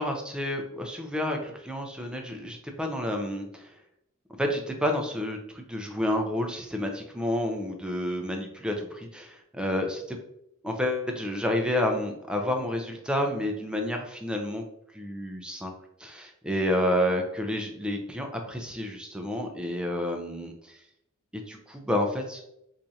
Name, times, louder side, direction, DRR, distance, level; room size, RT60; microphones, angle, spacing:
voice 1, 0.0-3.7 4.4-10.2 10.6-14.6 14.9-15.7 16.0-20.8 21.3-22.4, left 1 dB, 5° right, 3 dB, 0.4 m, -30 dB
4.3 x 2.4 x 2.6 m, 0.78 s
head